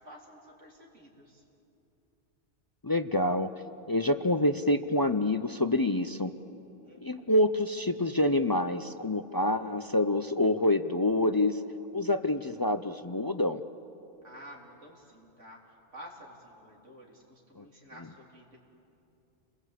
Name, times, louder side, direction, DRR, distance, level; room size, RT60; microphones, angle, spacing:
voice 1, 0.0-1.4 6.8-7.4 14.2-18.6, equal, 80° right, -2 dB, 3.9 m, -51 dB
voice 2, 2.8-3.5 3.9-6.3 7.0-11.6 11.9-13.6 17.6-17.7, left 1 dB, 30° left, 9 dB, 0.4 m, -27 dB
29.5 x 21.0 x 8.3 m, 2.9 s
omnidirectional pair, 1.2 m